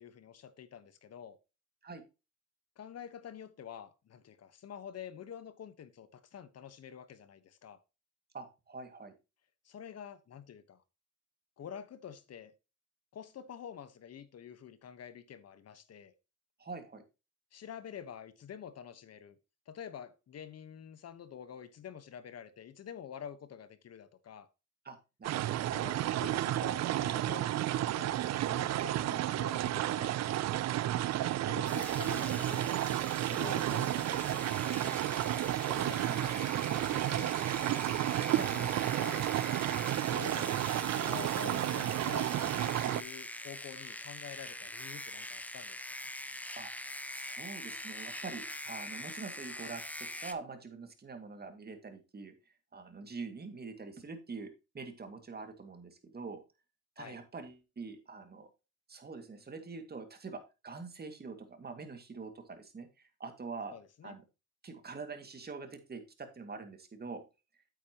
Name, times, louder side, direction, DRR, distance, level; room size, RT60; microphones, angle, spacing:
voice 1, 0.0-1.4 2.8-7.8 9.6-10.8 11.6-12.5 13.1-16.1 17.5-19.4 19.7-24.5 25.7-30.4 31.1-37.8 38.5-39.3 40.0-46.0 48.7-48.8 57.0-57.2 63.7-64.2, left 8 dB, 55° left, 1.2 m, -48 dB
voice 2, 8.3-9.1 16.6-17.0 24.9-26.0 38.3-38.5 46.6-46.7 47.1-52.3 52.7-56.4 57.0-58.5 58.9-63.7 64.0-64.2 64.6-67.2, right 4 dB, 30° right, 2.2 m, -45 dB
sound 1, 25.2-43.0, right 13 dB, 60° right, 0.5 m, -32 dB
sound 2, 31.6-50.3, left 1 dB, 5° left, 0.9 m, -43 dB
8.8 x 8.4 x 2.9 m
cardioid pair, 90°, 30 cm